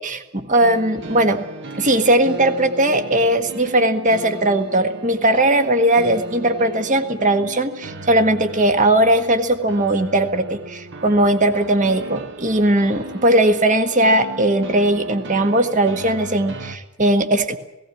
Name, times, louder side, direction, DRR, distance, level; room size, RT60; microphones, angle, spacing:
voice 1, 0.0-1.4 1.8-17.6, right 1 dB, 35° right, 7 dB, 1.6 m, -18 dB
sound 1, 0.6-16.8, right 1 dB, 55° right, 1.6 m, -36 dB
18.0 x 17.5 x 9.7 m, 0.95 s
head